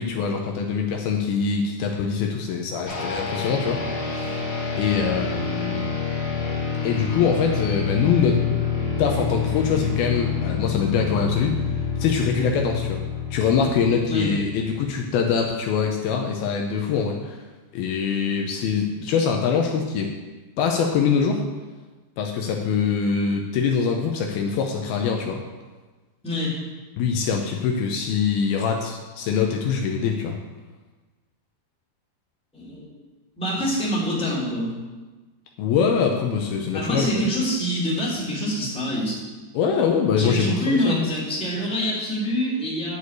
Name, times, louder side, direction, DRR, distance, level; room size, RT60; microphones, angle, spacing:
voice 1, 0.0-4.4 4.8-5.9 6.8-8.5 9.0-13.0 13.3-17.4 17.7-20.1 20.6-21.4 22.2-25.4 27.0-30.4 35.6-37.1 39.5-41.1, left 6 dB, 80° left, 2 dB, 2.5 m, -23 dB
sound 1, 2.9-15.1, left 6 dB, 35° left, 2.4 m, -27 dB
voice 2, 26.2-26.6 32.5-32.8 33.4-34.7 36.7-39.2 40.1-43.0, equal, ahead, -7 dB, 2.4 m, -25 dB
10.5 x 4.9 x 8.1 m, 1.3 s
omnidirectional pair, 4.7 m